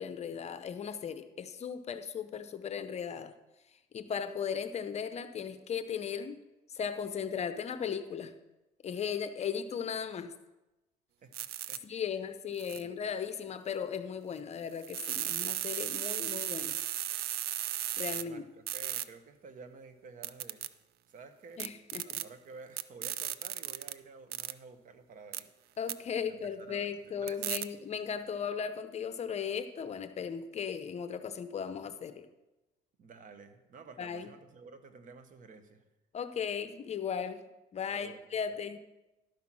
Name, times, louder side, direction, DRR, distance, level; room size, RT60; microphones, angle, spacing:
voice 1, 0.0-3.3 3.9-6.4 6.7-8.3 8.8-10.3 11.8-16.8 18.0-18.4 21.6-22.2 25.8-32.3 34.0-34.3 36.1-37.4 37.7-38.8, left 7 dB, 40° left, 10 dB, 0.7 m, -37 dB
sound 1, 11.3-11.8 12.6-12.8 14.8-18.2 18.7-19.0 20.2-20.7 21.6-22.2 22.8-23.9 24.3-24.5 25.3-25.4 25.9-26.0 27.3-27.7, right 12 dB, 65° right, 0.5 m, -35 dB
voice 2, 11.7-12.2 12.7-12.9 17.6-20.7 21.1-21.6 22.0-25.5 26.2-26.9 27.2-27.5 33.0-35.8 37.9-38.4, right 4 dB, 50° right, 9 dB, 1.0 m, -52 dB
12.0 x 5.8 x 6.1 m, 1.0 s
cardioid pair, 110°, 17 cm